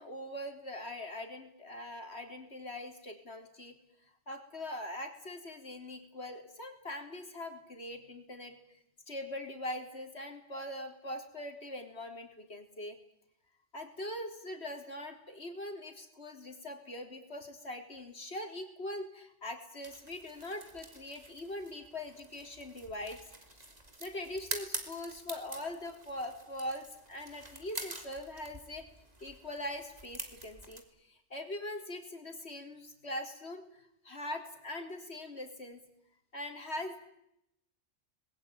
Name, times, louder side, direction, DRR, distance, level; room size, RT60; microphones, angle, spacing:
voice 1, 0.0-3.8 4.3-8.6 9.1-13.0 13.7-23.2 24.0-28.9 29.2-35.8 36.3-37.0, left 1 dB, 60° left, 5 dB, 3.9 m, -42 dB
sound 1, 19.8-30.8, right 2 dB, 35° right, 3.2 m, -46 dB
26.5 x 21.0 x 9.2 m, 0.79 s
omnidirectional pair, 1.2 m